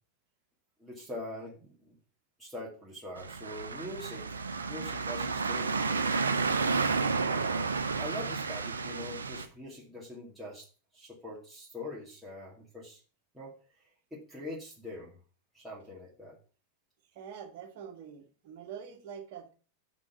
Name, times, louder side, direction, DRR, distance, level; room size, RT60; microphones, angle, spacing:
voice 1, 0.8-2.0 2.4-6.1 6.6-6.9 7.3-10.7 10.9-13.0 13.3-13.5 14.1-15.1 15.5-16.4, left 1 dB, 5° right, -6 dB, 2.4 m, -43 dB
sound 1, 3.2-9.5, right 4 dB, 70° right, 0.7 m, -31 dB
voice 2, 17.1-19.5, right 7 dB, 45° right, 4 dB, 1.7 m, -45 dB
6.2 x 6.2 x 5.9 m, 0.37 s
figure-of-eight pair, 90°, 0 cm